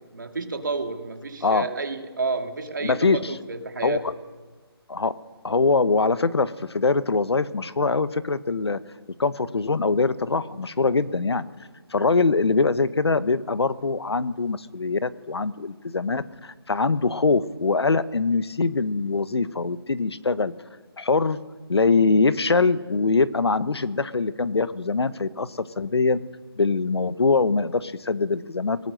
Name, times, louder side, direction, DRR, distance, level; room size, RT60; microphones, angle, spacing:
voice 1, 0.1-4.1, right 3 dB, 50° right, 5 dB, 2.2 m, -30 dB
voice 2, 2.8-3.3 3.8-4.1 4.9-5.1 5.4-8.8 9.2-11.4 11.9-20.5 21.0-21.4 21.7-26.2 26.6-28.8, left 4 dB, 80° left, 15 dB, 1.1 m, -23 dB
23.0 x 18.5 x 6.5 m, 1.4 s
hypercardioid pair, 180°, 13 cm